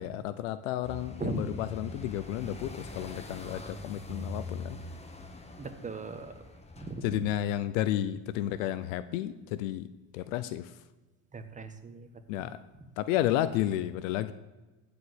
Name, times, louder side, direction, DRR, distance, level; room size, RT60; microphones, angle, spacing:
voice 1, 0.0-4.8 7.0-9.9 10.1-10.7 12.3-12.6 13.0-14.3, left 12 dB, 80° left, 13 dB, 0.7 m, -32 dB
sound 1, 0.8-7.0, left 2 dB, 15° left, 1.6 m, -43 dB
voice 2, 5.6-6.4 6.8-7.2 11.3-12.1 12.4-12.5, right 3 dB, 20° right, 8 dB, 1.5 m, -38 dB
15.0 x 5.1 x 8.0 m, 1.2 s
supercardioid pair, 100°, 39 cm